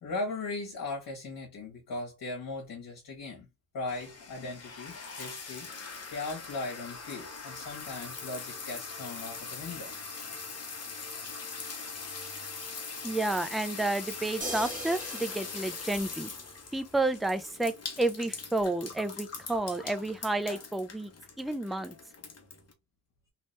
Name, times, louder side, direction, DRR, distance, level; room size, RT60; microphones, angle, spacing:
voice 1, 0.0-3.5 3.7-10.0, left 3 dB, 65° left, 1.4 m, -38 dB
sound 1, 3.9-22.7, left 4 dB, 40° left, 1.3 m, -42 dB
voice 2, 13.0-16.3 16.7-21.1 21.4-22.0, right 2 dB, ahead, 0.5 m, -31 dB
sound 2, 14.4-16.9 18.6-18.7, right 1 dB, 20° right, 1.7 m, -41 dB
3.2 x 2.9 x 3.1 m
cardioid pair, 75°, 38 cm